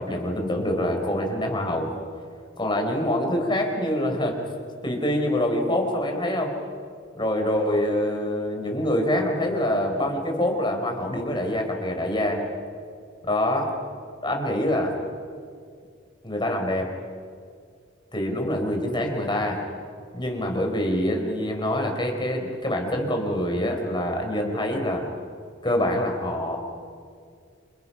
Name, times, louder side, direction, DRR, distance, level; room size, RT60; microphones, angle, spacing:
voice 1, 0.0-1.9 2.6-4.4 4.8-6.5 7.1-12.4 13.2-13.7 14.2-14.9 16.2-16.9 18.1-19.6 20.1-25.1 25.6-26.6, left 1 dB, 25° left, 3 dB, 4.4 m, -25 dB
29.0 x 28.0 x 5.7 m, 2.2 s
head